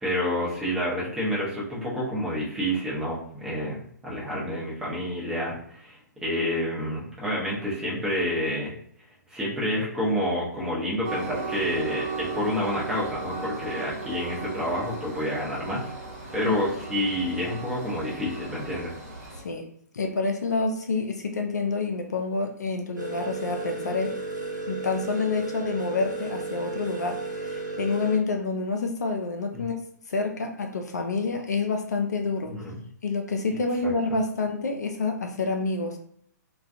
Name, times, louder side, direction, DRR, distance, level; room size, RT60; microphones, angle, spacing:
voice 1, 0.0-8.7 9.3-15.9 16.3-18.9 29.5-29.6 32.5-32.8 33.8-33.9, equal, 5° right, -7 dB, 0.7 m, -29 dB
Train, 11.0-19.4, right 3 dB, 45° right, 1.1 m, -36 dB
voice 2, 19.9-24.2 24.7-29.8 30.1-32.5 33.0-36.0, left 3 dB, 65° left, 3 dB, 0.4 m, -28 dB
sound 1, 23.0-28.2, right 3 dB, 85° right, 0.7 m, -33 dB
2.3 x 2.2 x 2.5 m, 0.66 s
figure-of-eight pair, 125°, 10 cm